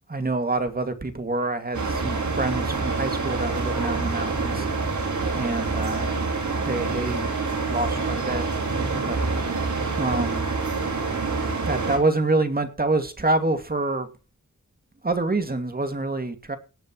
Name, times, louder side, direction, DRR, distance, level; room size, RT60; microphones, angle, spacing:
voice 1, 0.1-4.7 5.3-6.1 6.6-7.3 7.7-8.5 9.1-9.2 10.0-10.5 11.7-14.1 15.0-16.6, right 2 dB, 30° right, 7 dB, 2.4 m, -26 dB
sound 1, 1.7-12.0, right 4 dB, 75° right, 4.7 m, -26 dB
18.5 x 10.0 x 3.1 m, 0.33 s
wide cardioid pair, 80°, 30 cm